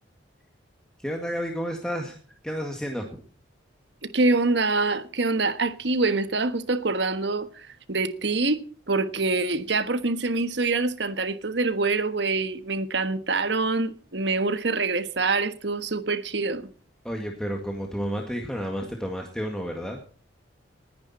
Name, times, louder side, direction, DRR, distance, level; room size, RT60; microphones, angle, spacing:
voice 1, 1.0-2.2 2.4-3.1 17.0-20.0, equal, 5° left, 2.0 m, -31 dB
voice 2, 4.0-16.7, right 3 dB, 65° right, 1.3 m, -25 dB
20.0 x 10.5 x 4.3 m
head